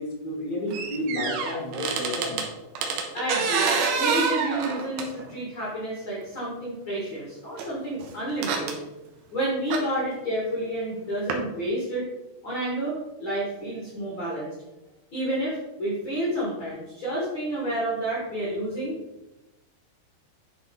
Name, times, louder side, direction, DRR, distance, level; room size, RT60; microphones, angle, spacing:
voice 1, 0.0-2.4, left 1 dB, 30° left, -3 dB, 1.6 m, -31 dB
sound 1, 0.7-2.5 2.7-5.3 6.2-6.3 7.6-7.7 8.0-8.7 9.7-9.8 11.3-11.4, right 5 dB, 75° right, 2.8 m, -27 dB
voice 2, 3.1-3.7 4.0-8.8 9.3-12.1 12.4-14.5 15.1-19.0, right 1 dB, 55° left, -5 dB, 1.4 m, -30 dB
10.5 x 4.4 x 4.3 m, 1.0 s
omnidirectional pair, 5.0 m